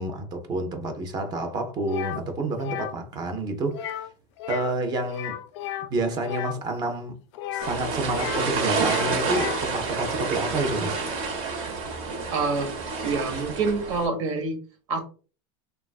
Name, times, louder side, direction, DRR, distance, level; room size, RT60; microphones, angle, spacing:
voice 1, 0.0-4.1 4.5-5.4 5.9-7.2 7.5-11.0, right 2 dB, 25° right, 0.5 m, -29 dB
sound 1, 1.9-2.2 2.6-2.9 3.7-4.1 4.4-4.8 5.1-6.6 7.3-8.5 8.7-9.7, left 12 dB, 65° left, 0.4 m, -34 dB
sound 2, 7.6-14.1, right 4 dB, 50° right, 0.9 m, -29 dB
voice 2, 12.3-12.7 13.0-14.6 14.9-15.0, right 4 dB, 75° right, 1.0 m, -26 dB
3.2 x 2.3 x 2.3 m
supercardioid pair, 150°, 16 cm